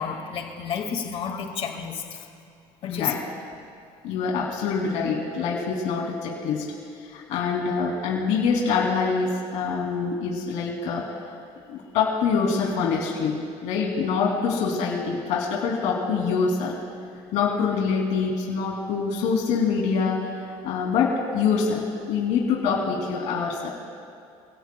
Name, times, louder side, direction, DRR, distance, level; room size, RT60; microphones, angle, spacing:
voice 1, 0.0-2.2 2.8-3.1, left 6 dB, 55° left, 3 dB, 2.1 m, -31 dB
voice 2, 2.8-3.2 4.0-6.6 7.0-11.0 11.7-16.7 17.3-23.7, left 5 dB, 75° left, -2 dB, 2.9 m, -25 dB
27.0 x 17.0 x 2.3 m, 2.4 s
cardioid pair, 110°, 12 cm